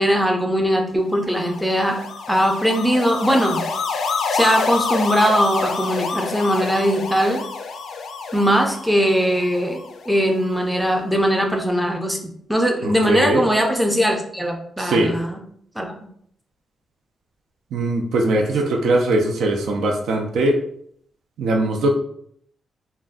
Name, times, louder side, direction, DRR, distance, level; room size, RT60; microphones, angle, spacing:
voice 1, 0.0-3.6 4.3-7.4 8.3-9.8 10.1-15.4 15.8-15.9, equal, ahead, 2 dB, 0.4 m, -20 dB
Siren Doppler, 1.2-10.5, left 4 dB, 70° left, 0.3 m, -28 dB
voice 2, 12.8-13.4 14.8-15.1 17.7-20.6 21.4-21.9, right 2 dB, 85° right, 3 dB, 0.4 m, -20 dB
3.5 x 2.2 x 2.4 m, 0.67 s
cardioid pair, 130°, 0 cm